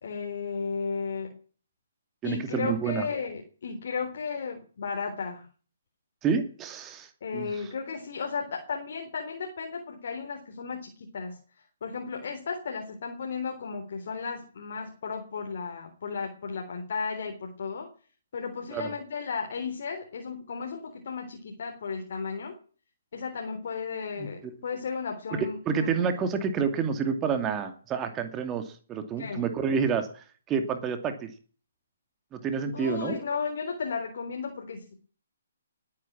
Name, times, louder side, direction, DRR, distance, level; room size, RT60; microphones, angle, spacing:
voice 1, 0.0-1.3 2.2-5.5 7.2-11.4 11.8-17.9 18.3-22.6 23.1-26.4 29.2-29.4 32.7-35.0, left 5 dB, 60° left, 3 dB, 3.8 m, -34 dB
voice 2, 2.2-3.1 6.2-7.5 18.7-18.9 24.2-24.5 25.3-31.3 32.3-33.2, right 6 dB, 20° right, 7 dB, 2.4 m, -29 dB
20.0 x 9.6 x 7.4 m, 0.41 s
figure-of-eight pair, 135°, 0 cm